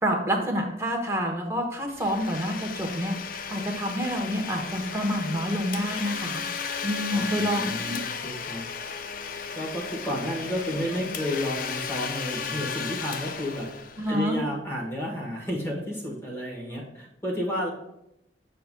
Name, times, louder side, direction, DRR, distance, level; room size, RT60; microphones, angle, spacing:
voice 1, 0.0-3.1 3.5-6.4 6.8-7.9 14.0-14.4, equal, 15° right, 1 dB, 0.9 m, -28 dB
Domestic sounds home sounds, 1.9-14.5, left 6 dB, 50° left, 0.4 m, -35 dB
voice 2, 7.1-8.6 9.5-13.7 14.1-17.7, equal, 15° left, -2 dB, 1.2 m, -31 dB
7.6 x 5.6 x 2.2 m, 0.81 s
head